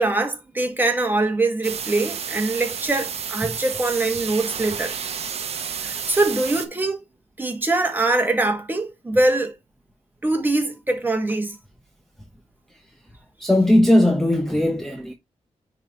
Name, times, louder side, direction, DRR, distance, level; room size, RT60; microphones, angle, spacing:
voice 1, 0.0-4.9 5.8-7.0 7.4-9.5 10.2-11.6, right 2 dB, 15° right, 1.9 m, -23 dB
sound 1, 1.6-6.7, right 7 dB, 65° right, 1.0 m, -31 dB
voice 2, 13.4-15.1, left 1 dB, 5° left, 1.0 m, -18 dB
9.6 x 4.0 x 3.1 m
wide cardioid pair, 110°, 11 cm